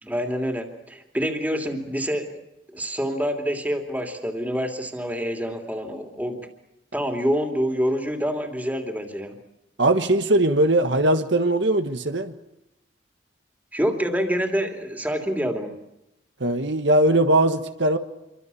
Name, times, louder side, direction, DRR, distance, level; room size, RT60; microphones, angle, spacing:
voice 1, 0.0-2.4 2.7-6.5 6.9-9.4 13.7-15.8, equal, 10° right, 4 dB, 2.8 m, -27 dB
voice 2, 9.8-12.3 16.4-18.0, right 1 dB, 70° right, 8 dB, 1.5 m, -20 dB
27.5 x 24.5 x 7.0 m, 0.89 s
head